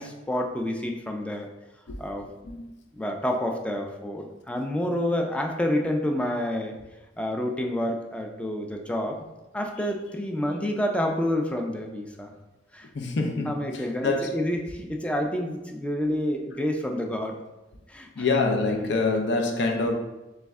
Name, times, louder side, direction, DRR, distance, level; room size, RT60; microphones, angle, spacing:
voice 1, 0.0-1.5 2.0-2.2 2.9-6.8 7.2-9.2 9.5-12.3 12.7-12.9 13.5-17.4 17.9-18.2, left 1 dB, 5° left, 2 dB, 0.4 m, -28 dB
voice 2, 12.9-14.3 18.1-19.9, left 3 dB, 70° left, 3 dB, 0.5 m, -26 dB
3.4 x 3.1 x 3.5 m, 1.0 s
head